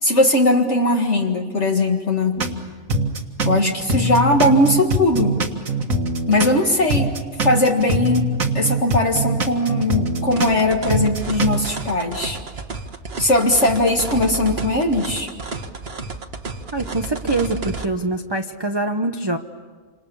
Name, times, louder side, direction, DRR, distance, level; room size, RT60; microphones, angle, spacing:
voice 1, 0.0-2.5 3.5-5.4 6.3-7.1 7.4-12.4 13.2-15.3, left 1 dB, 55° left, 1 dB, 2.2 m, -19 dB
sound 1, 2.4-2.6 2.9-6.6 6.9-10.6 10.9-11.8, right 2 dB, 75° right, 2.2 m, -23 dB
sound 2, 10.4-17.9, right 4 dB, 45° right, 1.6 m, -31 dB
voice 2, 16.7-19.4, right 2 dB, 20° right, 5 dB, 0.9 m, -24 dB
28.0 x 27.5 x 7.1 m, 1.5 s
omnidirectional pair, 1.5 m